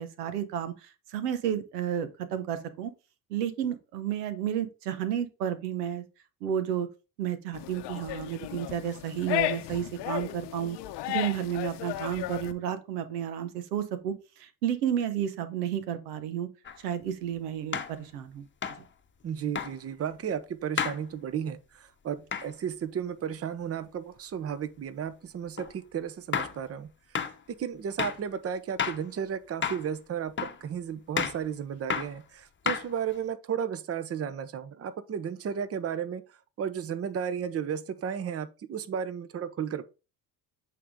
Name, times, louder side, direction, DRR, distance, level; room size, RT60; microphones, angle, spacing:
voice 1, 0.0-2.9 3.3-6.0 6.4-6.9 7.2-10.8 11.1-16.5 16.8-18.5, right 9 dB, 90° right, 0.9 m, -32 dB
sound 1, 7.5-12.5, left 15 dB, 65° left, 0.8 m, -34 dB
sound 2, 16.6-16.8 17.7-18.0 18.6-18.9 19.5-19.7 20.8-21.0 22.3-22.5 25.6-25.7 26.3-26.6 27.1-27.4 28.0-28.2 28.8-29.0 29.6-29.9 30.4-30.6 31.2-31.4 31.9-32.2 32.7-33.2, left 7 dB, 25° left, 0.9 m, -31 dB
voice 2, 19.2-26.9 27.5-36.2 36.6-39.8, right 8 dB, 30° right, 0.7 m, -34 dB
8.4 x 3.5 x 3.6 m
hypercardioid pair, 70°, 46 cm